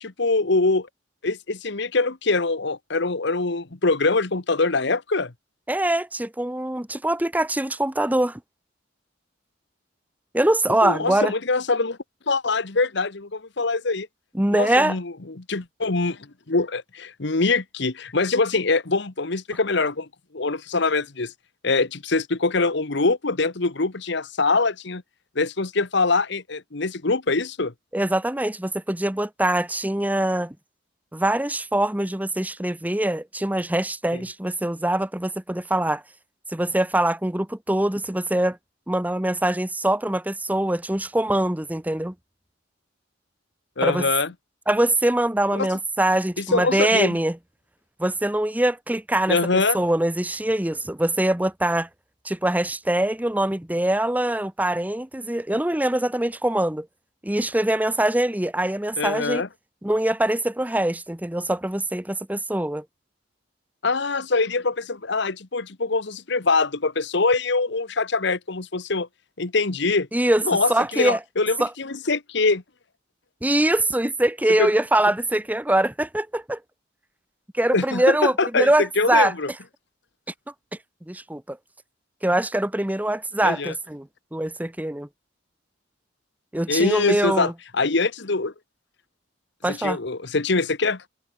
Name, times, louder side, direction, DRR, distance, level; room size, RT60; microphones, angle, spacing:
voice 1, 0.0-0.9 1.2-5.3 10.8-12.0 12.3-14.1 14.5-16.2 16.5-20.1 20.3-21.3 21.6-25.0 25.3-27.7 34.1-34.2 43.8-44.3 45.5-45.7 46.4-47.2 49.3-49.8 59.0-59.5 63.8-69.1 69.4-70.1 70.4-72.6 74.6-74.7 77.7-79.5 83.4-83.7 86.7-88.5 89.7-91.0, left 3 dB, 60° left, 1.3 m, -23 dB
voice 2, 5.7-8.4 10.3-11.3 14.3-15.0 27.9-30.5 31.1-36.0 36.5-38.6 38.9-42.1 43.8-44.1 44.7-47.4 48.0-51.9 52.2-56.9 57.2-59.4 59.8-62.8 70.1-70.4 70.7-71.2 71.6-71.7 73.4-76.6 77.5-79.3 81.1-81.6 82.2-84.1 84.3-85.1 86.5-87.5 89.6-90.0, right 1 dB, 10° right, 0.8 m, -23 dB
head